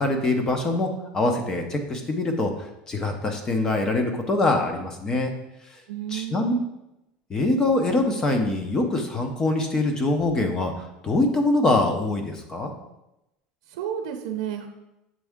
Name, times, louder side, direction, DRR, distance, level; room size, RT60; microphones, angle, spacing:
voice 1, 0.0-2.5 2.9-5.3 6.1-6.5 7.3-12.7, left 2 dB, 20° left, 4 dB, 0.7 m, -24 dB
voice 2, 5.9-6.7 13.7-14.7, right 8 dB, 90° right, 5 dB, 0.6 m, -31 dB
7.5 x 3.6 x 3.5 m, 0.90 s
cardioid pair, 155°, 3 cm